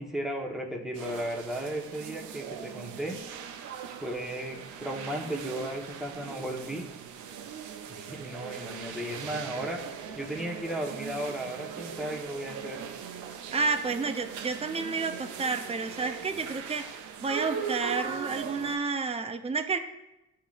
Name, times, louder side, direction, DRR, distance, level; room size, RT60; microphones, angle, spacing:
voice 1, 0.0-3.2 4.0-6.8 7.9-9.8 10.2-12.8, right 1 dB, ahead, 0 dB, 1.2 m, -35 dB
sound 1, 0.9-18.8, right 7 dB, 75° right, 0.7 m, -40 dB
voice 2, 13.5-16.9 17.2-19.8, right 4 dB, 20° right, 7 dB, 0.6 m, -30 dB
11.0 x 3.7 x 2.5 m, 0.94 s
cardioid pair, 90°, 30 cm